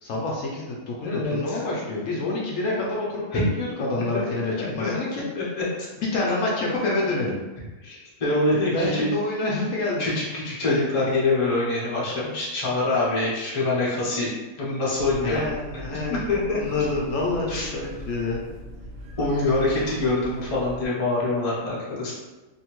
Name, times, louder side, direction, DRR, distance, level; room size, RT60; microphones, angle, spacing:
voice 1, 0.0-5.2 6.0-7.3 8.5-10.1 15.2-16.2 16.5-18.4, left 2 dB, 70° left, -3 dB, 0.9 m, -27 dB
voice 2, 1.0-1.6 3.3-3.5 4.1-4.2 4.6-4.9 5.3-5.6 7.8-9.1 10.0-14.3 14.6-15.5 16.1-16.8 17.5-17.7 19.2-22.1, left 2 dB, 35° left, -6 dB, 0.7 m, -25 dB
sound 1, 15.0-20.9, equal, 70° right, 1.1 m, -40 dB
2.7 x 2.6 x 2.9 m, 1.1 s
omnidirectional pair, 1.5 m